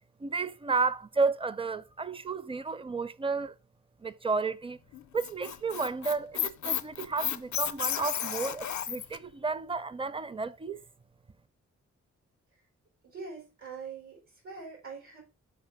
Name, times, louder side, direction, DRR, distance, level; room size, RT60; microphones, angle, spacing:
voice 1, 0.2-3.5 4.0-4.8 5.1-10.8, right 4 dB, 20° right, 0.5 m, -32 dB
Squeak, 4.9-9.2, left 10 dB, 70° left, 0.5 m, -33 dB
voice 2, 13.0-15.2, right 5 dB, 90° right, 4.4 m, -43 dB
5.9 x 4.0 x 4.7 m
cardioid pair, 55°, 30 cm